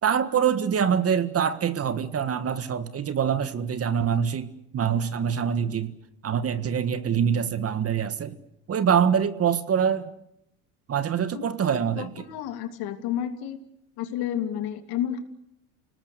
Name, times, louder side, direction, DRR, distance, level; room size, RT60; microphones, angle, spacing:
voice 1, 0.0-5.9 6.2-8.3 8.7-10.1 10.9-12.2, right 7 dB, 35° right, 12 dB, 1.7 m, -25 dB
voice 2, 12.0-13.6 14.0-15.2, left 10 dB, 60° left, 8 dB, 2.9 m, -30 dB
29.5 x 19.0 x 6.9 m, 0.78 s
supercardioid pair, 95°, 41 cm